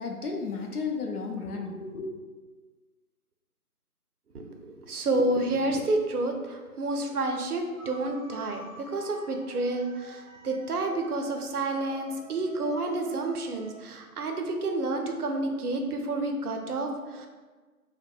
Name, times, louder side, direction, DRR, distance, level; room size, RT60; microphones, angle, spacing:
voice 1, 0.0-2.1, left 4 dB, 80° left, 2 dB, 0.5 m, -33 dB
voice 2, 4.3-17.3, right 2 dB, 80° right, 4 dB, 0.5 m, -30 dB
sound 1, 7.8-13.8, equal, 5° left, 0.4 m, -50 dB
2.6 x 2.0 x 2.3 m, 1.4 s
figure-of-eight pair, 180°, 45 cm